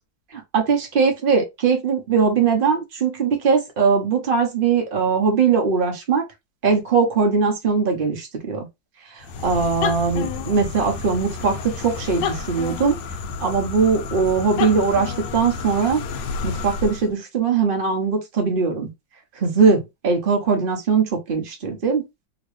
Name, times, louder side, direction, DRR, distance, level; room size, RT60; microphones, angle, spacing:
voice 1, 0.3-6.2 6.6-8.7 9.1-13.0 13.4-16.0 16.4-18.9 19.4-22.0, right 5 dB, 50° right, 0.6 m, -20 dB
sound 1, 9.2-17.1, left 5 dB, 75° left, 1.2 m, -30 dB
3.0 x 2.9 x 3.1 m
omnidirectional pair, 2.2 m